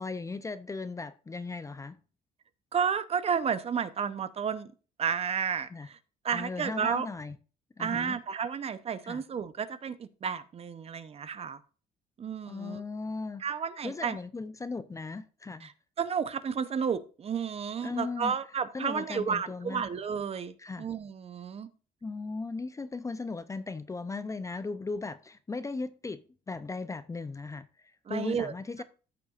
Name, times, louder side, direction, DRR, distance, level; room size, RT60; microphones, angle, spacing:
voice 1, 0.0-2.0 5.7-5.9 6.3-7.4 7.8-8.2 9.0-9.2 12.5-13.4 13.8-15.7 17.8-18.3 18.7-19.8 20.6-20.9 22.0-26.2 26.5-28.8, left 3 dB, 20° left, 0.5 m, -37 dB
voice 2, 2.7-4.7 5.0-6.0 6.2-7.1 7.8-11.6 12.2-12.8 13.4-14.2 15.6-15.7 16.0-21.7 28.1-28.5, right 7 dB, 35° right, 0.7 m, -32 dB
13.5 x 6.8 x 2.5 m
cardioid pair, 110°, 17 cm